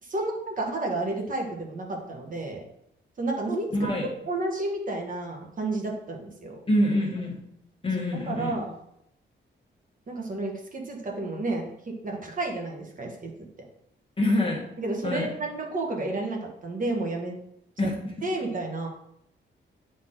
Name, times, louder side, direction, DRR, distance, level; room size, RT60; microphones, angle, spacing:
voice 1, 0.0-2.6 3.2-3.9 4.3-6.5 8.3-8.7 10.1-13.3 14.8-17.4 17.8-17.9 18.2-18.9, right 2 dB, 45° right, 1 dB, 1.4 m, -31 dB
voice 2, 3.7-4.1 6.7-7.4 7.8-8.6 14.2-14.6 15.0-15.3 17.8-17.9, left 1 dB, 25° left, 0 dB, 1.4 m, -25 dB
9.4 x 4.3 x 3.8 m, 0.77 s
wide cardioid pair, 160°, 20 cm